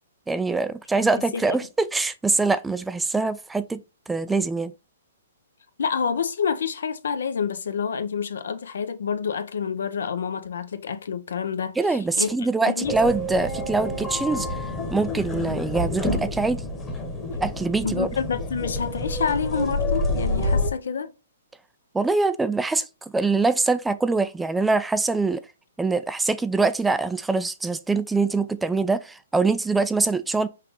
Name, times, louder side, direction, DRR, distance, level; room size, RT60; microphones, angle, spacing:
voice 1, 0.3-4.7 11.8-14.6 14.9-16.6 17.4-18.1 21.9-22.9 23.1-25.4 25.8-30.5, right 3 dB, 5° right, 0.3 m, -24 dB
voice 2, 5.8-13.0 17.8-21.1, left 6 dB, 75° left, 0.7 m, -28 dB
sound 1, 12.8-20.7, left 1 dB, 10° left, 1.1 m, -28 dB
5.7 x 2.5 x 3.1 m
hypercardioid pair, 135°, 0 cm